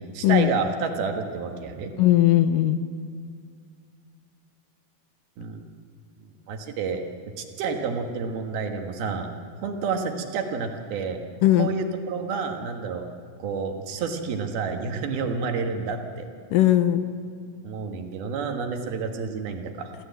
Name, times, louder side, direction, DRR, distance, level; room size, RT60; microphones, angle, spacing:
voice 1, 0.0-1.9 5.4-5.6 6.5-7.0 7.4-9.3 9.6-11.2 11.6-13.1 13.4-16.3 17.6-19.9, right 5 dB, 80° right, 4 dB, 3.5 m, -29 dB
voice 2, 2.0-2.8 11.4-11.7 16.5-17.1, left 13 dB, 75° left, 9 dB, 2.2 m, -18 dB
27.5 x 14.5 x 8.3 m, 2.2 s
omnidirectional pair, 4.4 m